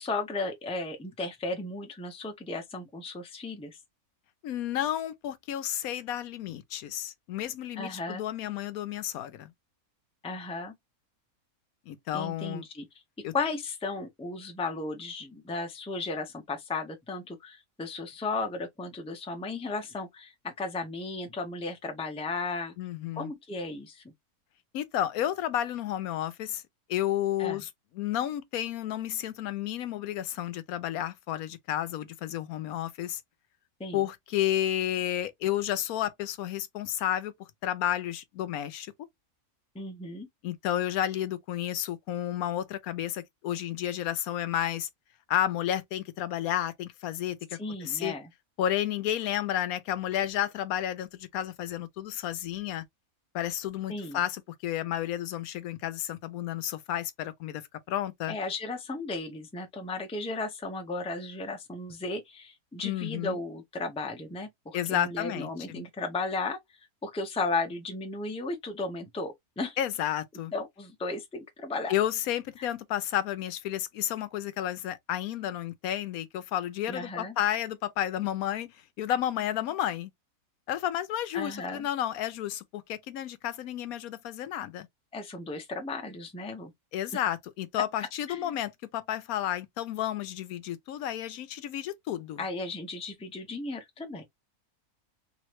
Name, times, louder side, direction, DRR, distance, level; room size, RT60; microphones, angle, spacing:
voice 1, 0.0-3.8 7.8-8.2 10.2-10.7 12.1-12.9 13.3-22.7 23.1-24.0 27.4-27.6 33.8-34.0 39.7-40.3 47.6-48.3 53.9-54.2 58.3-66.6 67.0-69.8 70.5-71.9 72.6-72.7 76.9-77.4 81.3-81.9 85.1-86.7 88.3-88.5 92.4-94.2, left 3 dB, 5° left, 0.5 m, -35 dB
voice 2, 4.4-9.5 11.9-12.6 13.2-13.3 22.8-23.3 24.7-26.6 26.9-27.7 28.0-33.2 33.9-37.3 37.6-38.9 40.4-44.9 45.3-48.1 48.6-52.8 53.3-57.6 57.9-58.4 62.8-63.4 64.7-65.8 69.8-70.5 71.9-80.1 80.7-84.9 86.9-92.4, left 11 dB, 75° left, 1.0 m, -31 dB
3.4 x 3.0 x 3.0 m
omnidirectional pair, 1.6 m